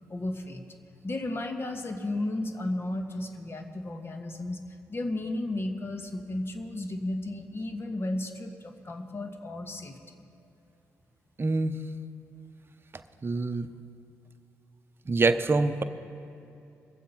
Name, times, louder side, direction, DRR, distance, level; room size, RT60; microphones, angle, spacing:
voice 1, 0.1-0.6 1.0-10.2, left 1 dB, 40° left, 5 dB, 1.5 m, -34 dB
voice 2, 11.4-11.7 13.2-13.7 15.1-15.8, right 3 dB, 35° right, 10 dB, 0.8 m, -25 dB
21.0 x 7.4 x 5.7 m, 2.7 s
supercardioid pair, 45°, 6 cm